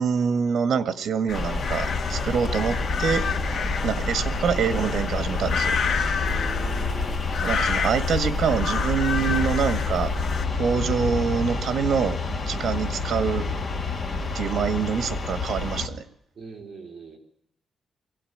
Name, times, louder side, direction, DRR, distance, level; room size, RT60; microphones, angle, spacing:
voice 1, 0.0-3.3 3.8-5.7 7.4-10.1 10.6-13.5 14.3-16.0, right 6 dB, 65° right, 10 dB, 1.8 m, -25 dB
sound 1, 1.3-10.4, left 5 dB, 85° left, 2.3 m, -29 dB
sound 2, 1.3-15.9, left 3 dB, 35° left, 2.0 m, -28 dB
voice 2, 6.2-7.3 16.3-17.2, right 4 dB, 40° right, 2 dB, 3.2 m, -40 dB
22.5 x 17.0 x 9.6 m, 0.76 s
wide cardioid pair, 170°, 0 cm